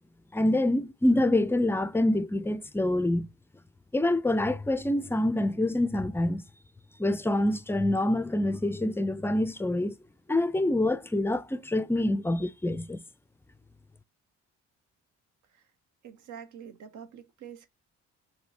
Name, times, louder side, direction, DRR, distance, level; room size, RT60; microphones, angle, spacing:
voice 1, 0.3-3.3 3.9-6.4 7.0-10.0 10.3-13.0, left 1 dB, 10° left, 0.4 m, -26 dB
voice 2, 16.0-17.7, right 8 dB, 75° right, 0.8 m, -46 dB
5.0 x 2.7 x 2.7 m
cardioid pair, 90°, 30 cm